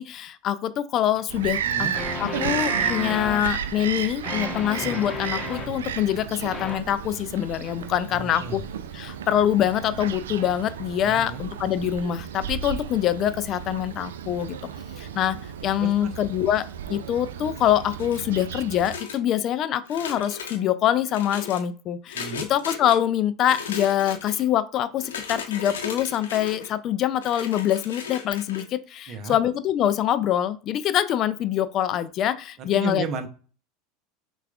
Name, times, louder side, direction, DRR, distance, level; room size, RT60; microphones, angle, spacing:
voice 1, 0.0-1.6 2.2-8.6 8.9-14.5 15.0-15.4 15.6-33.0, left 11 dB, 45° left, 13 dB, 0.3 m, -24 dB
sound 1, 1.2-1.3 1.9-3.4 4.2-5.7 6.5-6.8, left 3 dB, 25° left, 0.9 m, -33 dB
Bird vocalization bird call bird song, 1.3-19.0, right 8 dB, 80° right, 0.3 m, -33 dB
voice 2, 1.6-1.9 8.1-8.6 11.0-11.4 15.8-16.1 22.1-22.5 29.1-29.4 32.7-33.3, right 5 dB, 50° right, 8 dB, 0.7 m, -33 dB
sound 2, 18.0-18.4 18.8-19.4 19.9-20.6 21.1-21.6 22.1-23.0 23.4-24.4 25.0-26.7 27.2-28.7, left 6 dB, 80° left, 0.7 m, -36 dB
5.7 x 2.4 x 2.4 m, 0.38 s
hypercardioid pair, 85°, 0 cm